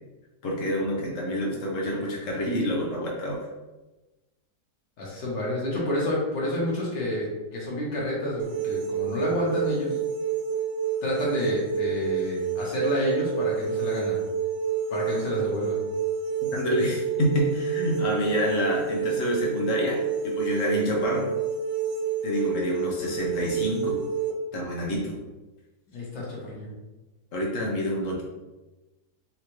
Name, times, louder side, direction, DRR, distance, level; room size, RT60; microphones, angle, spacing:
voice 1, 0.4-3.5 16.5-20.0 20.2-21.3 22.2-24.0 24.5-25.2 27.3-28.2, equal, 50° left, -3 dB, 1.3 m, -27 dB
voice 2, 5.0-9.9 11.0-14.2 14.9-15.9 25.9-26.7, left 1 dB, 80° left, -5 dB, 2.0 m, -29 dB
sound 1, 8.4-24.3, right 7 dB, 65° right, 0.8 m, -29 dB
4.9 x 2.9 x 3.1 m, 1.1 s
omnidirectional pair, 1.9 m